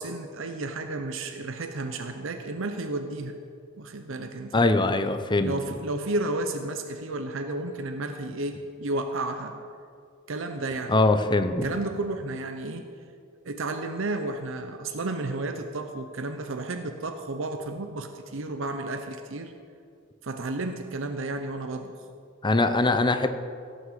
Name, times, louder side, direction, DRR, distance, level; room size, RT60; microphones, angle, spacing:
voice 1, 0.0-3.4 3.8-4.7 5.4-9.6 10.3-11.0 11.6-12.9 13.4-19.5 20.2-22.0, right 2 dB, 65° right, 6 dB, 0.8 m, -32 dB
voice 2, 4.5-5.5 10.9-11.7 22.4-23.3, left 2 dB, 20° left, 8 dB, 0.7 m, -22 dB
16.5 x 6.6 x 7.5 m, 2.3 s
head